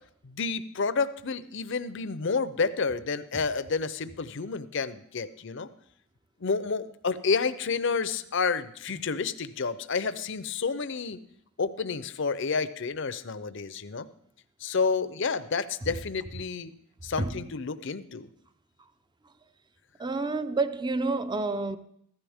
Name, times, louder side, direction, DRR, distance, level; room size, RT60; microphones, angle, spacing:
voice 1, 0.2-5.7 6.4-11.2 11.6-14.1 14.6-16.7 17.0-18.3, left 5 dB, 65° left, 0.7 m, -30 dB
voice 2, 20.0-21.8, right 3 dB, 20° right, 0.6 m, -29 dB
15.5 x 13.5 x 3.6 m
head